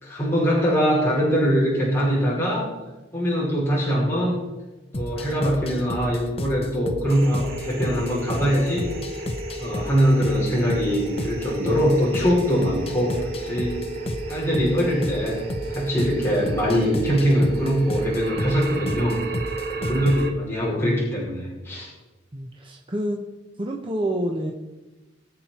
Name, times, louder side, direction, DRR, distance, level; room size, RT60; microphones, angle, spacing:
voice 1, 0.0-2.7 3.1-4.4 4.9-8.9 9.6-13.8 14.3-15.4 15.7-19.4 19.7-21.9, equal, 15° left, -7 dB, 5.1 m, -22 dB
sound 1, 4.9-20.3, left 1 dB, 30° left, 0.8 m, -33 dB
sound 2, 7.1-20.3, right 3 dB, 55° right, 2.2 m, -33 dB
voice 2, 22.3-23.2 23.6-24.5, right 1 dB, 25° right, 0 dB, 1.1 m, -28 dB
22.0 x 7.7 x 4.5 m, 1.1 s
head